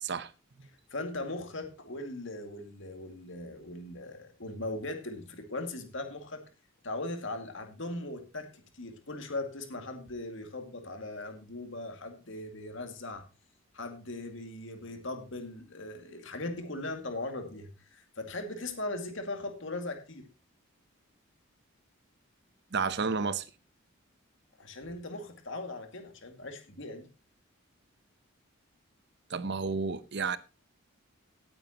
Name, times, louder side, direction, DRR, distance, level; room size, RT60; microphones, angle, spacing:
voice 1, 0.0-0.3 22.7-23.5 29.3-30.4, right 5 dB, 55° right, 0.8 m, -31 dB
voice 2, 0.9-6.4 6.8-13.2 13.7-20.2 24.6-27.1, left 2 dB, 60° left, 2.3 m, -39 dB
18.0 x 9.0 x 2.9 m
head